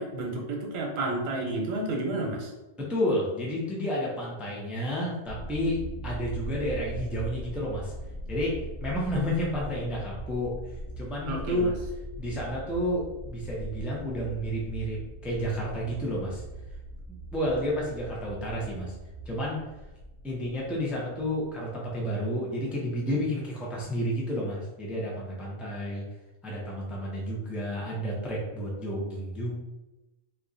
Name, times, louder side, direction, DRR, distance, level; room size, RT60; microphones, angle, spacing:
voice 1, 0.0-2.5 11.2-11.7, right 2 dB, 90° right, 1 dB, 1.2 m, -31 dB
voice 2, 2.8-7.9 8.3-10.5 11.0-11.8 12.2-16.4 17.3-18.9 19.3-19.6 20.2-26.0 26.4-29.5, equal, ahead, -4 dB, 0.4 m, -31 dB
sound 1, 5.2-21.7, right 1 dB, 80° left, 1.2 m, -40 dB
2.9 x 2.4 x 3.8 m, 1.1 s
omnidirectional pair, 1.3 m